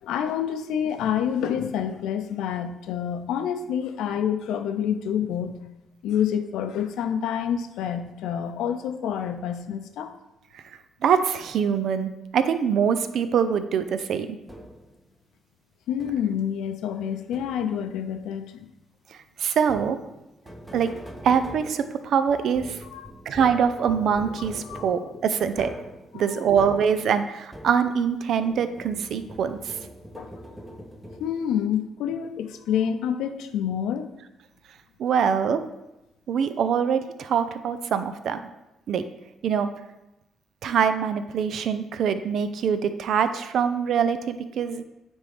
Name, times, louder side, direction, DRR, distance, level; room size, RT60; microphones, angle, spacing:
voice 1, 0.0-5.6 6.0-10.1 15.9-18.7 22.9-23.1 24.6-24.9 26.1-26.3 30.1-30.3 31.2-34.1, left 8 dB, 85° left, 8 dB, 0.5 m, -28 dB
voice 2, 11.0-14.4 19.4-20.0 20.7-20.9 21.2-22.8 23.3-25.7 26.1-29.8 35.0-35.6 36.3-38.4 38.9-39.0 39.4-39.7 40.6-44.8, right 7 dB, 70° right, 10 dB, 0.5 m, -24 dB
sound 1, 14.5-15.0 16.0-16.5 17.3-17.9 19.6-28.1 28.4-31.6, equal, 5° right, 0.9 m, -43 dB
9.6 x 3.6 x 3.3 m, 0.94 s
cardioid pair, 90°, 0 cm